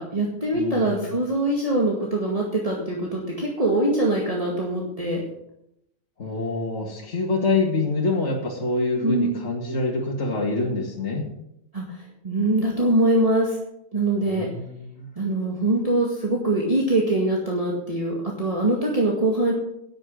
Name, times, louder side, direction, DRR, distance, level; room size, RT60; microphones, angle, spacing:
voice 1, 0.0-5.2 9.0-9.4 11.7-13.6 13.9-14.5 15.2-19.5, right 1 dB, 25° right, -3 dB, 2.1 m, -23 dB
voice 2, 0.5-1.1 6.2-11.2 14.2-15.1, left 3 dB, 60° left, -2 dB, 2.4 m, -26 dB
11.0 x 9.2 x 6.4 m, 0.79 s
omnidirectional pair, 1.3 m